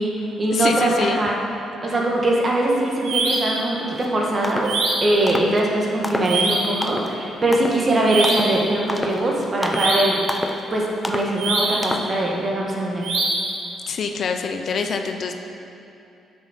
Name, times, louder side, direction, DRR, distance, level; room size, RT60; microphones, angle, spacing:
voice 1, 0.0-1.3 1.8-4.7 5.0-10.2 10.7-13.1, right 1 dB, 35° right, -2 dB, 1.6 m, -21 dB
voice 2, 0.5-1.2 13.9-15.4, left 5 dB, 60° left, 5 dB, 0.6 m, -25 dB
sound 1, 3.0-3.6 4.6-5.2 6.2-6.8 8.0-8.6 9.7-10.3 11.4-11.9 13.0-13.6, right 2 dB, 80° right, 1.4 m, -23 dB
sound 2, 3.9-4.1 4.4-4.8 5.3-5.6 6.0-6.4 6.8-7.1 7.5-7.9 8.2-8.6 8.9-9.3 9.6-9.9 10.3-10.6 11.0-11.3 11.8-12.1, left 1 dB, 10° left, 0.6 m, -29 dB
9.3 x 6.2 x 4.4 m, 2.8 s
cardioid pair, 90°, 0 cm